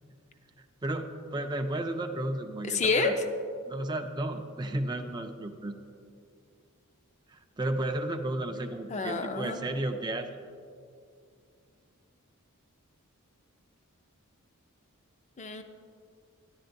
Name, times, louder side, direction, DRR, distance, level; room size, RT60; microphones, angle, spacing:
voice 1, 0.6-3.1 3.7-5.8 7.3-10.3, right 1 dB, 20° right, 5 dB, 0.4 m, -33 dB
voice 2, 2.6-3.1 8.9-9.6 15.4-15.6, left 4 dB, 30° left, 7 dB, 0.5 m, -28 dB
14.0 x 10.5 x 2.6 m, 2.4 s
head